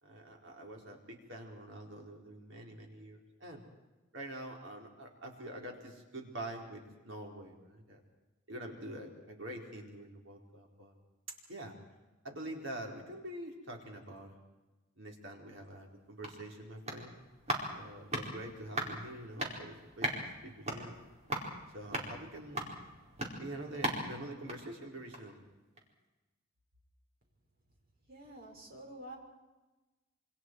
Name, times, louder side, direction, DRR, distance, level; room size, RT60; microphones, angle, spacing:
voice 1, 0.0-3.6 4.1-8.0 8.5-10.9 11.5-11.8 12.2-14.3 15.0-17.1 17.7-21.0 21.7-22.7 23.4-25.4, right 1 dB, 65° right, 0 dB, 4.6 m, -46 dB
sound 1, 15.8-25.4 25.7-25.8, right 1 dB, 35° right, 4.8 m, -40 dB
voice 2, 28.1-29.2, right 1 dB, 50° right, 1 dB, 5.7 m, -48 dB
27.5 x 26.5 x 4.8 m, 1.1 s
head